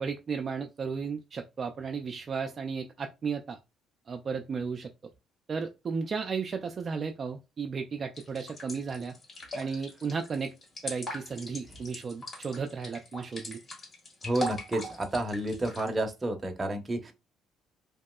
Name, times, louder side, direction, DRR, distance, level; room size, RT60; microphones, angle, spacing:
voice 1, 0.0-3.6 4.1-4.9 5.5-9.1 9.5-10.6 10.8-13.6, right 5 dB, 45° right, 0.4 m, -34 dB
sound 1, 8.2-15.9, equal, 40° left, 1.6 m, -40 dB
voice 2, 14.2-17.1, right 1 dB, 25° right, 0.8 m, -30 dB
2.9 x 2.7 x 2.3 m
supercardioid pair, 75°, 0 cm